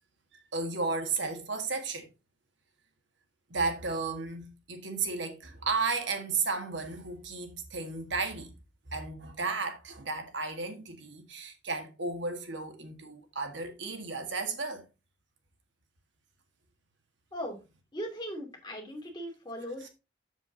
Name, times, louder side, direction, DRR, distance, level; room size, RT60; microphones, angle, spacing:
voice 1, 0.5-2.1 3.5-8.5 8.9-14.8 19.8-19.9, right 4 dB, 70° right, 1.7 m, -33 dB
voice 2, 17.9-19.9, equal, 20° left, 2.5 m, -38 dB
7.4 x 7.3 x 3.8 m
head